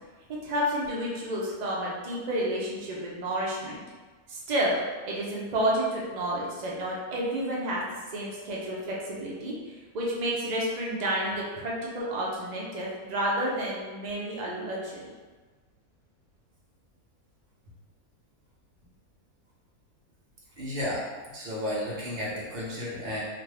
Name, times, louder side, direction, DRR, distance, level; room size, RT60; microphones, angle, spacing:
voice 1, 0.4-3.8 4.3-4.8 5.1-7.8 8.1-15.1, right 1 dB, 90° right, -4 dB, 0.3 m, -30 dB
voice 2, 20.6-23.2, left 1 dB, 45° right, -6 dB, 0.9 m, -33 dB
2.6 x 2.5 x 3.2 m, 1.3 s
omnidirectional pair, 1.6 m